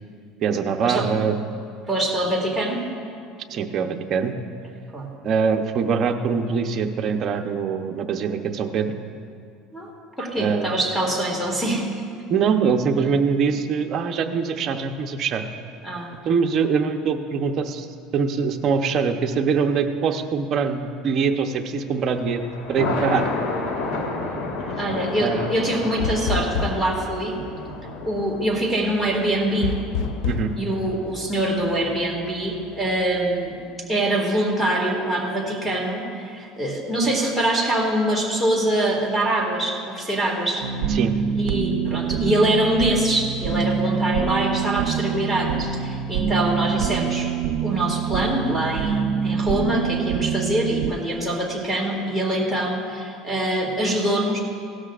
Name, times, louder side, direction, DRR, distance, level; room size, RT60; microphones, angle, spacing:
voice 1, 0.4-1.4 3.5-4.3 5.2-8.9 10.4-10.7 12.3-15.4 16.2-17.9 18.1-22.4 22.7-23.3 25.2-25.5 30.2-30.5 40.9-41.1, right 6 dB, 40° right, 4 dB, 0.8 m, -23 dB
voice 2, 1.9-2.8 4.9-5.1 9.7-9.9 10.2-11.9 15.8-16.1 24.7-27.4 28.0-29.7 30.5-33.6 33.9-40.7 41.3-47.3 47.6-54.4, right 1 dB, ahead, -1 dB, 2.2 m, -24 dB
Thunder, 21.9-33.3, left 3 dB, 75° left, 1.6 m, -32 dB
sound 1, 26.0-27.0 29.6-30.5, left 6 dB, 60° left, 0.6 m, -26 dB
sound 2, 40.6-50.9, right 7 dB, 70° right, 0.5 m, -25 dB
17.0 x 13.0 x 2.5 m, 2.3 s
cardioid pair, 140°, 0 cm